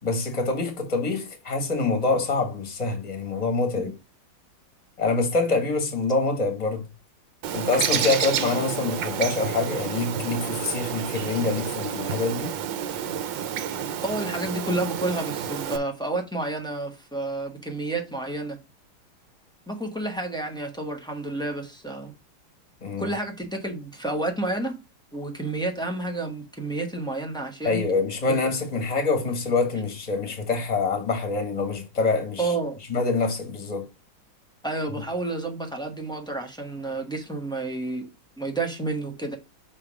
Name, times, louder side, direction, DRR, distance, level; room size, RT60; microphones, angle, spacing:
voice 1, 0.0-3.9 5.0-6.8 7.5-12.6 22.8-23.1 27.6-32.5 32.9-33.9, left 3 dB, 20° left, 1.5 m, -25 dB
Bird, 7.4-15.8, right 9 dB, 70° right, 1.3 m, -30 dB
voice 2, 14.0-18.6 19.7-22.1 23.0-24.8 25.1-27.8 28.3-28.4 32.4-32.8 34.6-38.1 38.4-39.3, right 2 dB, 5° left, 0.4 m, -30 dB
6.6 x 3.4 x 4.9 m
omnidirectional pair, 2.3 m